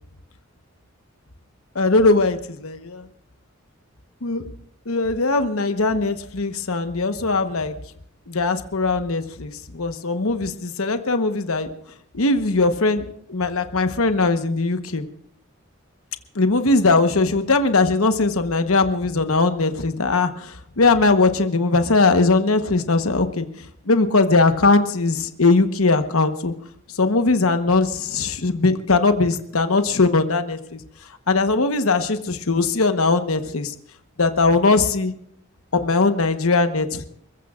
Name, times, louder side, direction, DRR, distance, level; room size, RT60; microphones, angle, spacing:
voice 1, 1.7-3.1 4.2-4.4 4.9-7.7 8.3-11.7 12.1-15.0 16.3-23.5 23.9-26.5 26.9-30.8 31.3-33.7 34.2-35.1 35.7-37.1, left 3 dB, 85° left, 8 dB, 1.1 m, -20 dB
29.5 x 15.0 x 2.5 m, 0.69 s
head